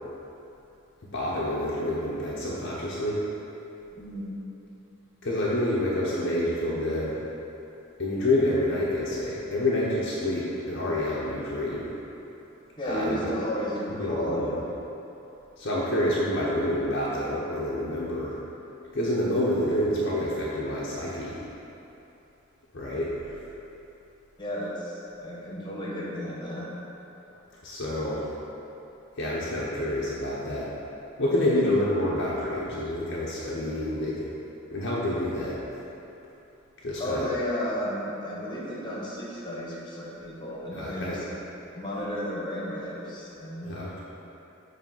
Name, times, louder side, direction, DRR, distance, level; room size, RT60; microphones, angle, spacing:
voice 1, 1.1-3.3 5.2-7.1 8.0-12.0 12.9-13.2 14.0-14.6 15.6-18.4 18.9-21.4 22.7-23.4 27.6-28.3 29.2-30.7 31.2-34.4 34.7-35.6 36.8-37.3 40.7-41.2 43.6-44.0, left 1 dB, 60° left, -7 dB, 0.8 m, -28 dB
voice 2, 4.0-4.3 12.8-14.5 24.4-26.7 31.5-31.8 37.0-41.2 41.7-43.7, equal, 25° left, -6 dB, 1.4 m, -33 dB
7.2 x 3.3 x 5.5 m, 2.9 s
head